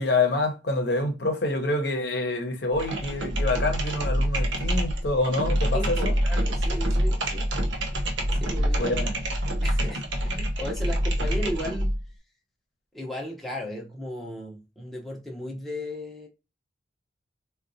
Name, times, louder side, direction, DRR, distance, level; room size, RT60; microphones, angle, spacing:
voice 1, 0.0-6.1 8.8-9.1, left 2 dB, 60° left, 0.8 m, -26 dB
sound 1, 2.7-12.0, equal, 90° right, 0.7 m, -26 dB
voice 2, 5.7-7.5 8.3-9.0 9.6-11.9 12.9-16.3, left 1 dB, ahead, 0.7 m, -35 dB
3.8 x 2.3 x 2.5 m
head